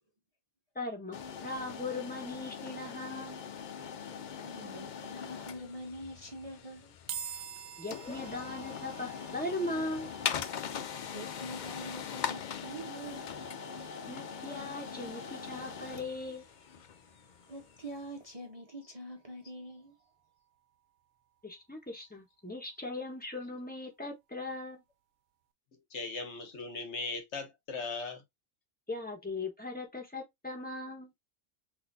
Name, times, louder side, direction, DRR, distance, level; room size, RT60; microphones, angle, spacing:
voice 1, 0.7-3.4 7.8-10.1 14.1-16.4 21.4-24.8 28.9-31.1, left 2 dB, 5° left, 1.1 m, -39 dB
sound 1, 1.1-18.0, left 7 dB, 85° left, 0.4 m, -41 dB
voice 2, 4.4-6.9 11.1-13.3 17.5-19.9, right 1 dB, 30° right, 0.7 m, -45 dB
sound 2, 7.1-20.4, right 9 dB, 75° right, 0.9 m, -50 dB
voice 3, 25.9-28.2, left 3 dB, 60° left, 1.1 m, -38 dB
5.9 x 2.6 x 2.6 m
omnidirectional pair, 1.4 m